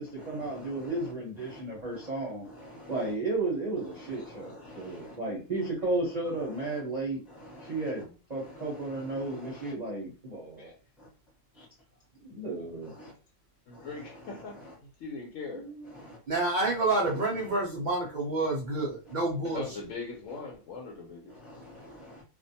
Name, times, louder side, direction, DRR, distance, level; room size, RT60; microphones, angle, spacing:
voice 1, 0.0-2.5 2.9-7.2 7.6-10.7 12.2-12.9 15.5-16.0, right 2 dB, 40° right, 0.7 m, -34 dB
voice 2, 4.6-5.2 7.5-7.7 15.9-16.2 21.4-22.2, left 1 dB, ahead, 0.4 m, -48 dB
voice 3, 13.7-14.6 15.0-15.6 19.5-21.3, left 4 dB, 70° left, 1.0 m, -40 dB
voice 4, 16.3-19.8, right 2 dB, 75° right, 0.4 m, -28 dB
2.5 x 2.1 x 2.7 m
omnidirectional pair, 1.4 m